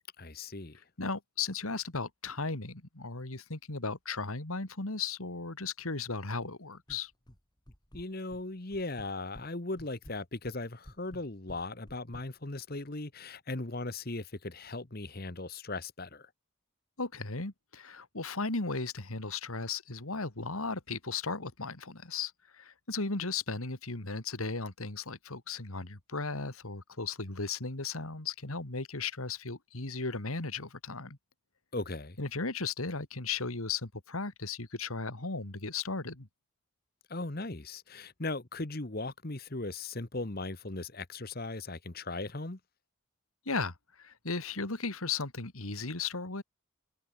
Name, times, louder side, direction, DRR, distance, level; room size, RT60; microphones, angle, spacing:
voice 1, 0.2-0.8 7.9-16.3 31.7-32.2 37.1-42.6, left 2 dB, 45° left, 1.4 m, -38 dB
voice 2, 1.0-7.1 17.0-31.2 32.2-36.3 43.5-46.4, left 4 dB, 80° left, 2.5 m, -36 dB
sound 1, 6.9-7.4 7.7-8.4 8.7-9.5 9.8-12.3, equal, 20° left, 3.3 m, -51 dB
head